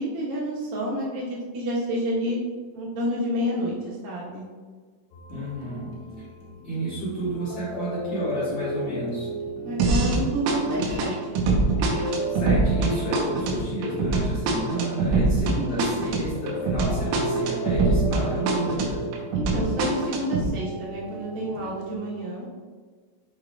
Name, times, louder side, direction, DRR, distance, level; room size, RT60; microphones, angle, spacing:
voice 1, 0.0-2.4 2.7-4.5 9.6-11.5 15.5-15.9 19.3-22.4, equal, 75° right, -5 dB, 2.2 m, -29 dB
sound 1, 5.1-21.9, right 1 dB, 75° left, 2.8 m, -35 dB
voice 2, 5.3-5.9 6.6-9.3 12.3-19.0, right 1 dB, 60° left, -11 dB, 2.0 m, -31 dB
sound 2, 9.8-10.2 10.5-18.2 18.5-20.5, right 3 dB, 90° right, 3.5 m, -24 dB
8.5 x 4.8 x 2.3 m, 1.5 s
omnidirectional pair, 5.8 m